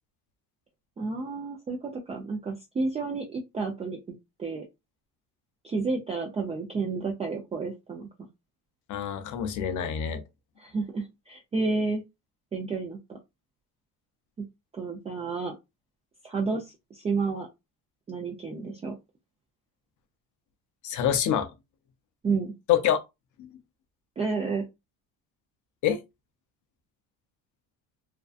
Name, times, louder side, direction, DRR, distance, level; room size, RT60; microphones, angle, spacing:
voice 1, 1.0-4.0 4.4-4.6 5.6-8.1 10.6-12.0 12.5-13.2 14.4-14.5 14.7-15.5 16.2-17.5 18.1-19.0 22.2-22.5 24.2-24.6, right 4 dB, 15° right, 0.4 m, -31 dB
voice 2, 8.9-10.2 20.8-21.5 22.7-23.0 23.4-23.5 25.8-26.0, left 9 dB, 50° left, 0.6 m, -26 dB
2.5 x 2.2 x 2.4 m
cardioid pair, 120°, 38 cm